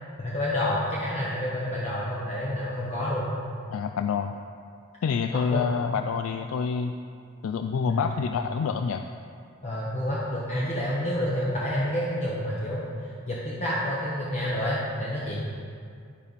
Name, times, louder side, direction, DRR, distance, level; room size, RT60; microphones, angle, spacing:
voice 1, 0.2-3.3 5.3-5.7 7.9-8.1 9.6-15.4, left 1 dB, 30° left, -7 dB, 1.0 m, -29 dB
voice 2, 3.7-4.4 5.0-6.9 7.4-9.0, left 6 dB, 80° left, 7 dB, 0.3 m, -27 dB
11.5 x 5.2 x 4.1 m, 2.3 s
head